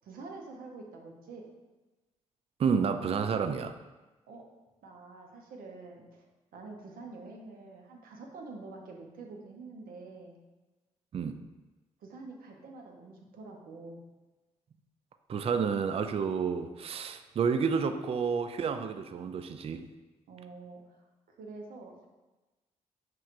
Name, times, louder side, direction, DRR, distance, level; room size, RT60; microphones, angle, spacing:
voice 1, 0.0-1.5 4.3-4.5 4.8-6.2 6.5-10.4 12.0-14.0 20.3-22.1, right 3 dB, 65° right, 1 dB, 0.7 m, -47 dB
voice 2, 2.6-3.8 11.1-11.4 15.3-19.8, right 6 dB, 40° right, 9 dB, 0.4 m, -30 dB
5.6 x 3.1 x 2.5 m, 1.1 s
hypercardioid pair, 40°, 16 cm